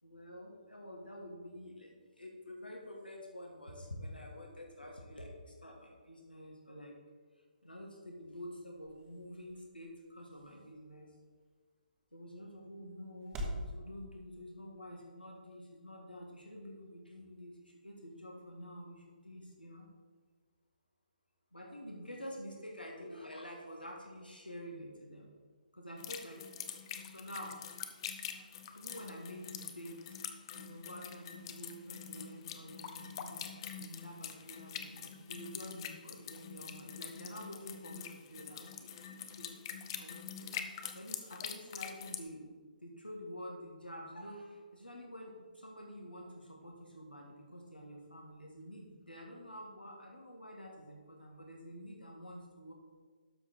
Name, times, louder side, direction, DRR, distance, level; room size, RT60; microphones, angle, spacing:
voice 1, 0.0-6.9 7.3-11.2 12.1-19.9 21.5-25.3 25.7-26.4 27.0-27.6 28.3-28.4 28.7-30.2 30.5-39.5 40.0-40.5 40.9-42.5 42.8-52.7, equal, 85° left, -1 dB, 1.5 m, -48 dB
sound 1, 7.4-13.7, equal, 15° right, 1.1 m, -48 dB
sound 2, 26.0-42.2, left 8 dB, 30° left, 0.7 m, -45 dB
12.5 x 4.9 x 4.0 m, 1.5 s
figure-of-eight pair, 135°, 5 cm